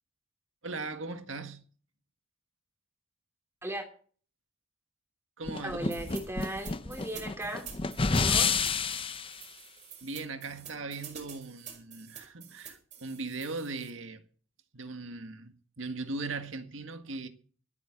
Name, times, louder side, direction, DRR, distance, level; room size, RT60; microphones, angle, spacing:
voice 1, 0.6-1.6 5.4-6.0 10.0-14.2 14.7-17.3, right 3 dB, 80° right, 1.8 m, -39 dB
sound 1, 5.5-9.4, left 4 dB, 30° left, 0.7 m, -29 dB
voice 2, 5.6-7.7 8.1-8.7, right 1 dB, 15° right, 3.1 m, -37 dB
sound 2, 5.9-13.9, right 8 dB, 40° right, 5.2 m, -48 dB
24.5 x 9.2 x 3.8 m
head